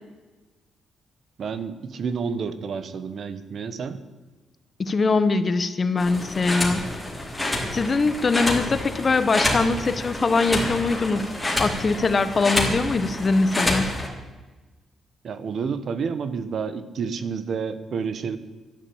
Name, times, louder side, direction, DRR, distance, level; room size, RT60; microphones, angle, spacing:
voice 1, 1.4-4.0 15.2-18.4, right 5 dB, 55° right, 12 dB, 1.2 m, -29 dB
voice 2, 4.8-6.9 7.7-11.3 11.6-13.9, left 3 dB, 35° left, 12 dB, 1.0 m, -22 dB
sound 1, 6.0-14.1, left 1 dB, 5° left, 3.6 m, -28 dB
12.5 x 11.0 x 8.8 m, 1.2 s
cardioid pair, 105°, 0 cm